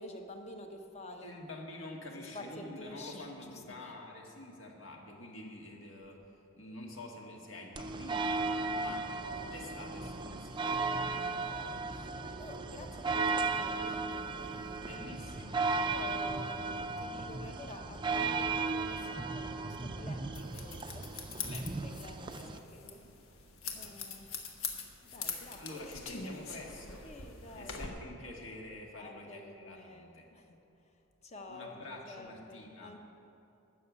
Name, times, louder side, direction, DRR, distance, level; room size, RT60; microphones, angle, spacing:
voice 1, 0.0-1.3 2.3-3.9 9.3-9.6 11.3-15.1 15.9-23.0 23.8-24.3 25.0-25.8 27.0-27.8 29.0-30.6 31.2-33.0, left 1 dB, 30° left, 4 dB, 1.0 m, -49 dB
voice 2, 1.2-6.2 6.6-8.5 8.7-9.1 9.4-10.8 14.8-15.7 21.3-22.0 22.3-23.0 23.6-24.2 25.6-27.1 27.6-30.3 31.5-33.0, left 1 dB, 65° left, 0 dB, 1.8 m, -48 dB
sound 1, 7.7-22.6, right 3 dB, 25° right, 0.4 m, -35 dB
sound 2, 20.3-27.9, left 5 dB, 90° left, 1.3 m, -43 dB
12.5 x 6.5 x 8.3 m, 2.8 s
head